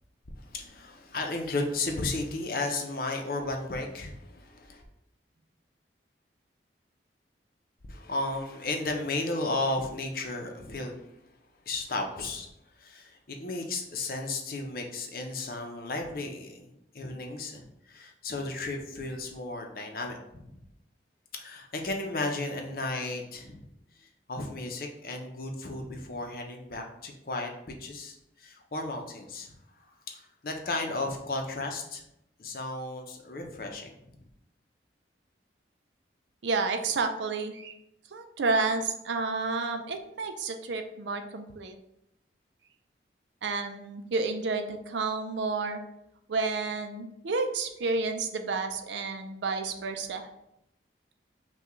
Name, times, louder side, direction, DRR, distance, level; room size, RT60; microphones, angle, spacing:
voice 1, 0.3-4.8 7.9-11.2 11.6-16.7 16.9-20.6 21.3-23.6 24.0-32.0 32.4-33.9, left 2 dB, 50° left, 2 dB, 0.6 m, -34 dB
voice 2, 36.4-37.8 38.1-41.7 43.4-45.8 46.3-50.3, right 3 dB, 80° right, 6 dB, 0.5 m, -30 dB
5.7 x 2.3 x 3.0 m, 0.81 s
head